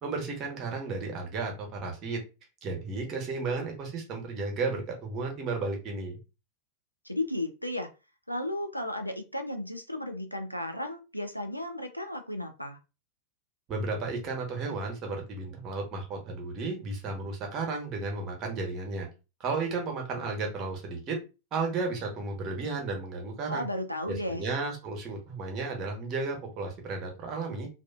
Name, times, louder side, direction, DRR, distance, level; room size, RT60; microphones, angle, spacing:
voice 1, 0.0-2.2 2.6-6.2 13.7-19.1 19.4-21.2 21.5-23.6 24.1-27.7, right 3 dB, 35° right, 2 dB, 0.8 m, -33 dB
voice 2, 7.0-7.9 8.3-12.8 23.5-24.4, left 1 dB, 90° left, 5 dB, 0.3 m, -34 dB
2.4 x 2.3 x 2.2 m, 0.30 s
figure-of-eight pair, 90°, 0 cm